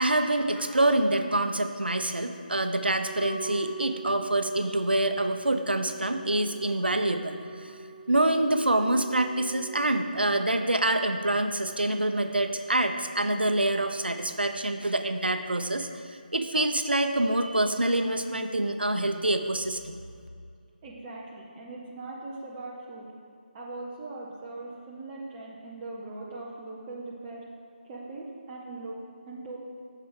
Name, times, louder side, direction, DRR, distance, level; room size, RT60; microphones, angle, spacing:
voice 1, 0.0-7.8 8.1-19.9, right 1 dB, 85° right, 7 dB, 0.6 m, -26 dB
Wind instrument woodwind instrument, 2.6-9.7, right 3 dB, 20° left, 1.2 m, -43 dB
voice 2, 20.8-23.1 23.5-27.4 27.8-29.0 29.3-29.6, right 2 dB, 20° right, -5 dB, 0.7 m, -40 dB
9.4 x 6.6 x 3.7 m, 2.3 s
figure-of-eight pair, 155°, 5 cm